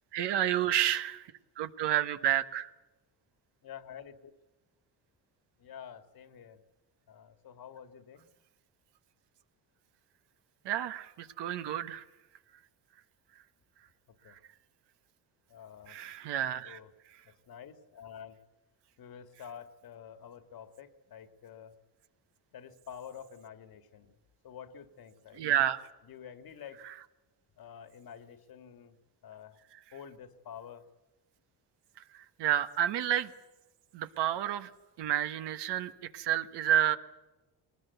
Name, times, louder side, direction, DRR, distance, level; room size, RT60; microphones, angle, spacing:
voice 1, 0.1-1.3 1.6-2.7 10.6-12.0 14.3-14.4 15.9-16.8 25.3-25.8 26.8-26.9 32.1-33.3 33.9-34.7 35.0-37.0, right 11 dB, 75° right, 10 dB, 1.4 m, -30 dB
voice 2, 3.6-4.3 5.6-6.6 7.1-8.2 14.2-14.4 15.5-16.0 16.6-16.9 17.2-18.4 19.0-21.8 22.5-24.1 24.4-25.4 26.1-26.8 27.6-29.0 29.2-29.6 29.9-30.8, left 8 dB, 60° left, 9 dB, 2.1 m, -48 dB
22.0 x 19.5 x 8.1 m, 1.1 s
cardioid pair, 100°, 41 cm